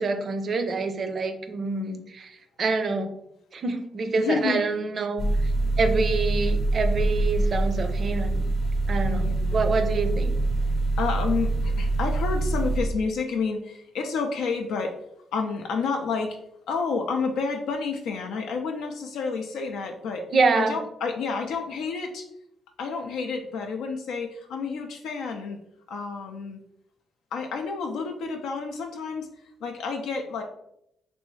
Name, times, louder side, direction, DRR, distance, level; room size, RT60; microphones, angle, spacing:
voice 1, 0.0-3.2 3.5-5.5 5.8-8.4 8.9-10.3 20.3-20.8, right 4 dB, 50° right, 7 dB, 0.4 m, -26 dB
voice 2, 4.2-4.6 9.1-9.6 11.0-14.9 15.3-16.4 16.7-20.3 20.6-22.2 22.8-25.6 25.9-26.6 27.3-29.3 29.6-30.4, left 5 dB, 80° left, 3 dB, 0.4 m, -30 dB
sound 1, 5.2-12.8, right 2 dB, 60° left, 0.7 m, -25 dB
3.0 x 2.6 x 3.1 m, 0.78 s
cardioid pair, 90°, 0 cm